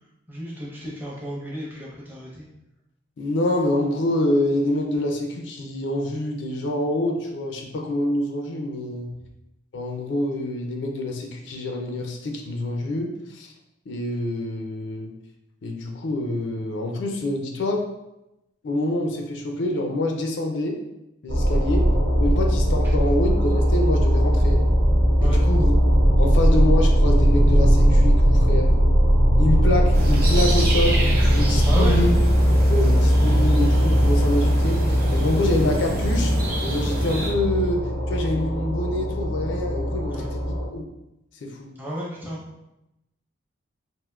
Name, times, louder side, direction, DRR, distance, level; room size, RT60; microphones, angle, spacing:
voice 1, 0.3-2.5 21.6-21.7 25.2-25.4 31.6-32.0 40.1-40.3 41.8-42.4, equal, 10° right, -5 dB, 0.7 m, -33 dB
voice 2, 3.2-9.1 9.7-13.5 13.9-15.1 15.6-17.9 18.6-20.8 21.2-21.9 22.2-24.7 25.2-25.7 26.2-28.7 29.4-31.0 31.3-32.1 32.5-36.3 36.6-40.8 41.4-41.7, left 1 dB, 65° left, 2 dB, 0.4 m, -26 dB
sound 1, 21.3-40.7, equal, 90° right, 0.9 m, -19 dB
sound 2, 29.9-37.3, right 1 dB, 50° right, 0.8 m, -29 dB
3.5 x 2.5 x 2.3 m, 0.91 s
head